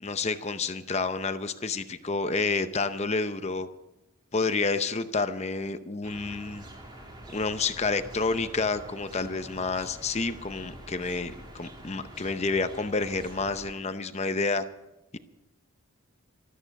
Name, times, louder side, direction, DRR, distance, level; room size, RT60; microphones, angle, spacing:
voice 1, 0.0-3.7 4.3-6.6 7.3-14.6, left 3 dB, 30° left, 10 dB, 0.6 m, -29 dB
sound 1, 6.0-13.7, right 1 dB, 20° right, 2.1 m, -46 dB
13.5 x 13.5 x 6.5 m, 0.95 s
head